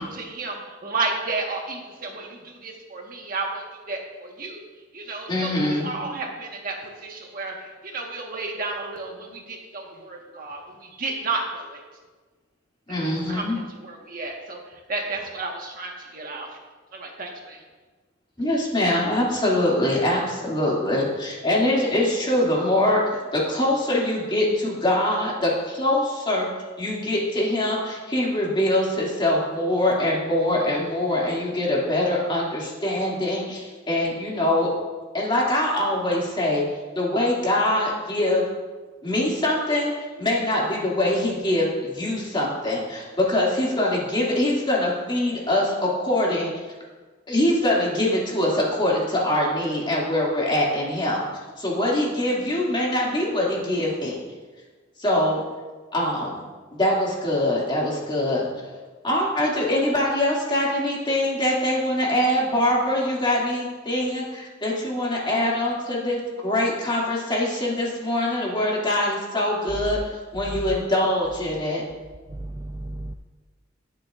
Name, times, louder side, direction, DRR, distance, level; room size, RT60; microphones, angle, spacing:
voice 1, 0.0-4.7 4.9-11.8 13.0-13.5 13.8-14.6 14.9-16.5 16.9-17.6, right 3 dB, 45° right, 0 dB, 1.4 m, -32 dB
voice 2, 5.3-5.9 12.9-13.6 18.4-26.5 26.8-34.7 35.1-36.6 37.0-38.5 39.0-39.9 40.2-46.5 47.3-51.2 51.6-54.2 55.0-55.4 55.9-56.4 56.7-58.5 59.0-70.0 70.3-71.8, left 1 dB, 25° left, -4 dB, 2.4 m, -23 dB
voice 3, 70.4-70.7 72.3-73.1, right 1 dB, 20° right, 5 dB, 0.4 m, -34 dB
20.0 x 6.7 x 2.5 m, 1.3 s
head